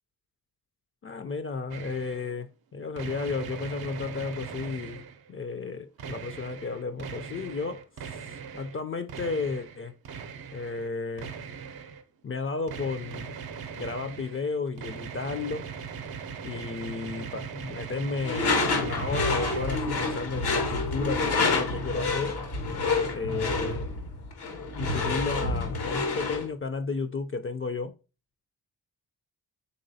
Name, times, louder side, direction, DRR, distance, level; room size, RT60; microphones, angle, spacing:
voice 1, 1.0-5.0 5.3-9.9 10.5-11.3 12.2-13.3 13.8-15.7 16.4-22.4 23.1-23.9 24.7-27.9, left 4 dB, 35° left, 0.4 m, -33 dB
sound 1, 1.7-2.3 3.0-5.3 6.0-8.8 9.1-10.9 11.2-12.0 12.7-19.8, right 6 dB, 70° right, 0.6 m, -40 dB
Door / Screech, 18.2-26.5, left 3 dB, 85° left, 0.9 m, -28 dB
4.1 x 3.2 x 2.6 m
cardioid pair, 55°, 38 cm